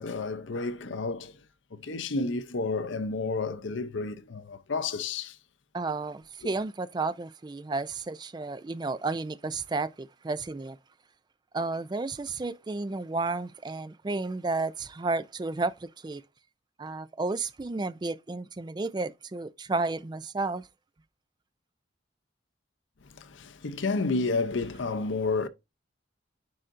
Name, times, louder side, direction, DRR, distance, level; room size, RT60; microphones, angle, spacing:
voice 1, 0.0-1.4 1.7-5.4 23.1-25.5, left 3 dB, 75° left, 0.7 m, -31 dB
voice 2, 5.7-10.8 11.5-16.2 16.8-20.7, right 3 dB, 20° right, 0.3 m, -32 dB
9.8 x 3.8 x 2.5 m
head